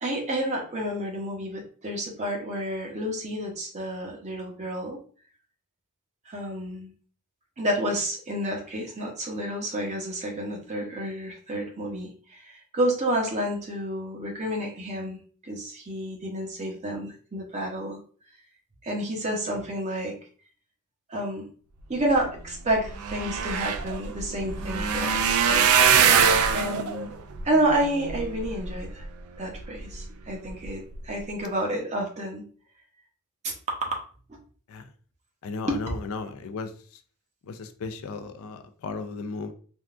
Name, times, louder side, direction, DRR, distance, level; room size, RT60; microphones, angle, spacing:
voice 1, 0.0-5.0 6.3-6.9 7.6-18.0 18.8-20.1 21.1-21.4 21.9-25.7 26.5-27.1 27.4-29.0 29.4-32.4 34.3-34.4 35.7-35.8, right 1 dB, 30° right, 0 dB, 0.8 m, -30 dB
sound 1, 22.4-22.5 22.7-29.1 29.6-30.0 30.5-30.7 30.9-31.0, right 7 dB, 70° right, 0.4 m, -23 dB
voice 2, 35.4-37.0 37.4-39.5, left 4 dB, 65° left, 8 dB, 0.4 m, -35 dB
3.6 x 2.3 x 2.4 m, 0.42 s
head